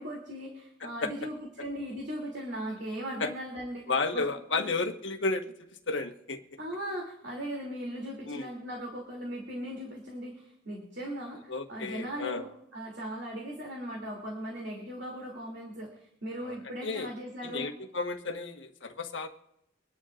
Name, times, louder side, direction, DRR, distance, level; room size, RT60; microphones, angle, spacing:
voice 1, 0.0-3.8 4.1-4.2 4.5-4.7 6.6-17.7, equal, 65° right, -1 dB, 3.0 m, -38 dB
voice 2, 0.8-1.1 3.2-3.3 3.9-6.4 8.2-8.5 11.5-12.4 16.4-16.6 16.8-17.1 17.4-19.3, left 3 dB, 85° left, 5 dB, 1.4 m, -32 dB
25.5 x 10.5 x 2.5 m, 0.82 s
head